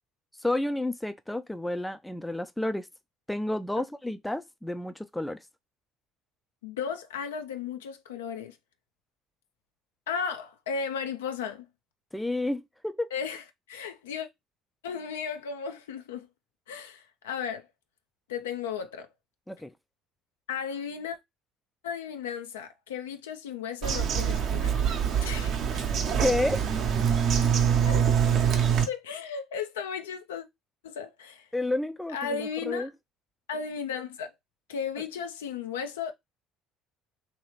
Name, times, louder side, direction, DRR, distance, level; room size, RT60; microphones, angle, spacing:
voice 1, 0.4-2.9 3.3-5.4 12.1-13.1 19.5-19.7 26.2-26.7 31.5-32.9, left 1 dB, 5° left, 0.3 m, -30 dB
voice 2, 6.6-8.6 10.1-11.7 13.1-13.4 13.7-14.3 14.8-16.3 16.7-17.6 18.3-19.1 20.5-21.2 21.8-24.7 25.2-25.6 27.9-28.0 28.9-30.4 30.8-31.5 32.1-32.9 33.5-34.3 34.7-36.1, left 6 dB, 75° left, 0.4 m, -35 dB
Bird vocalization bird call bird song, 23.8-28.8, right 8 dB, 50° right, 0.7 m, -25 dB
3.1 x 2.7 x 3.0 m
figure-of-eight pair, 60°, 0 cm